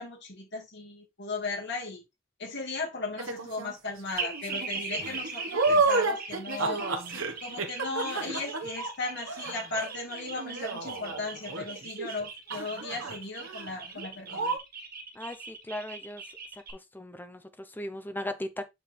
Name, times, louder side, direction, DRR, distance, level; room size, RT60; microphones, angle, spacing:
voice 1, 0.0-2.0 2.4-6.8 7.4-14.4, left 3 dB, 55° left, 2.6 m, -36 dB
sound 1, 3.2-3.7 4.2-12.2 12.5-13.2 13.4-13.7 13.9-14.0 14.3-14.6, right 3 dB, 75° right, 1.5 m, -31 dB
sound 2, 4.2-16.7, right 4 dB, 45° right, 1.8 m, -40 dB
voice 2, 15.1-16.2 16.5-18.7, left 1 dB, 10° left, 0.7 m, -38 dB
8.5 x 4.6 x 3.4 m
head